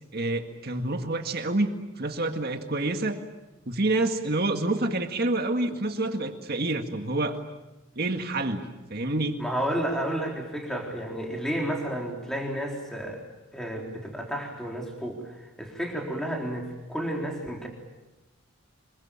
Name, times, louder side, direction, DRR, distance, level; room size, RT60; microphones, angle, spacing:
voice 1, 0.1-3.2 3.7-7.4 8.0-9.4, right 2 dB, 45° right, 6 dB, 1.9 m, -28 dB
voice 2, 9.4-13.2 13.5-17.7, right 1 dB, ahead, 0 dB, 3.8 m, -31 dB
27.0 x 22.5 x 8.9 m, 1.0 s
head